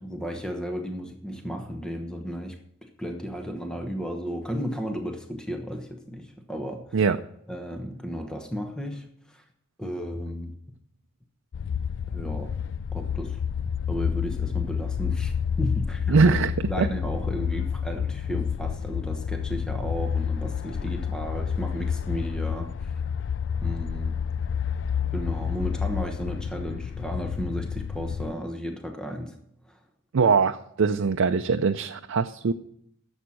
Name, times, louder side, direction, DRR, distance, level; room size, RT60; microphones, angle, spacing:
voice 1, 0.0-6.8 7.5-9.4 9.8-10.5 12.1-12.5 12.9-13.4 13.9-16.2 16.7-22.9 23.6-24.1 25.1-29.3 29.7-29.8, equal, 5° left, 4 dB, 1.0 m, -34 dB
sound 1, 11.5-28.3, left 7 dB, 60° left, 0.4 m, -29 dB
voice 2, 16.1-16.5 16.8-16.9 30.1-32.5, right 5 dB, 75° right, 7 dB, 0.5 m, -22 dB
11.5 x 7.3 x 6.3 m, 0.73 s
head